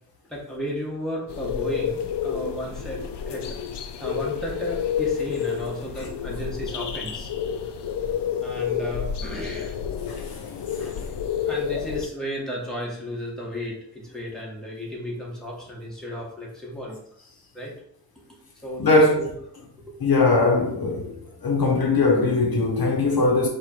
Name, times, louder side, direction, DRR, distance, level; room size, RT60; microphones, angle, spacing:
voice 1, 0.3-3.4 4.0-7.3 8.4-9.8 10.7-11.1 11.5-17.0 17.5-17.7 18.6-19.3 19.9-20.0, equal, ahead, 1.5 m, -34 dB
sound 1, 1.3-12.1, left 8 dB, 80° left, 0.5 m, -29 dB
voice 2, 18.8-19.2 20.0-21.1 21.4-23.5, left 3 dB, 60° left, 0.9 m, -20 dB
4.7 x 2.5 x 4.4 m
wide cardioid pair, 80°, 40 cm